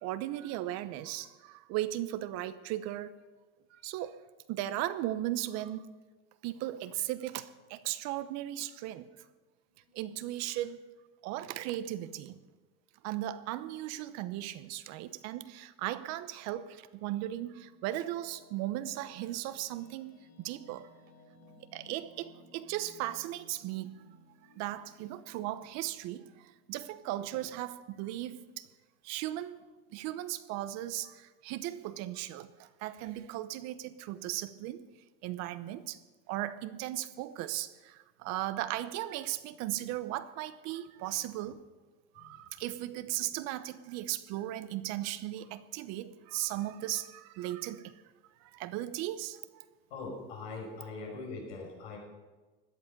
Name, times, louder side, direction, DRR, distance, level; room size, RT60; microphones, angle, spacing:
voice 1, 0.0-3.1 3.7-4.2 4.5-5.9 6.4-9.1 9.9-10.9 11.2-12.4 13.0-20.9 21.7-24.0 24.6-28.7 29.0-29.6 29.9-34.9 35.2-36.0 36.3-41.6 42.1-48.0 48.4-49.6, right 14 dB, 60° right, 13 dB, 1.0 m, -37 dB
sound 1, 17.1-28.4, left 1 dB, 60° left, 5.0 m, -61 dB
voice 2, 49.9-52.0, left 3 dB, 90° left, -1 dB, 5.9 m, -42 dB
17.0 x 11.5 x 5.4 m, 1.2 s
supercardioid pair, 125°, 30 cm